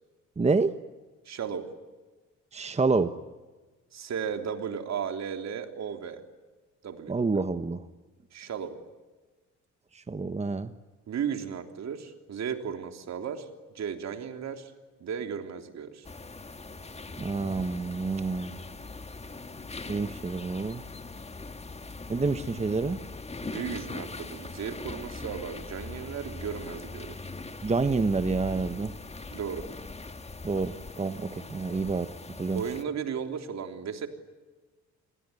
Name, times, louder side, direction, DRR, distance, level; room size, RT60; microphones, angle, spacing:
voice 1, 0.4-0.7 2.5-3.1 7.1-7.8 9.9-10.7 17.2-18.5 19.9-20.8 22.1-23.0 27.6-28.9 30.4-32.1 32.4-32.6, right 4 dB, 20° right, 10 dB, 1.3 m, -28 dB
voice 2, 1.2-1.7 3.9-6.2 6.8-7.1 8.3-8.8 11.1-13.5 13.7-14.7 15.0-16.0 23.4-27.2 29.3-29.6 32.5-34.1, right 7 dB, 60° right, 6 dB, 3.5 m, -35 dB
sound 1, 16.0-32.8, left 3 dB, 20° left, 1.8 m, -41 dB
28.0 x 21.5 x 9.8 m, 1.3 s
cardioid pair, 90°, 30 cm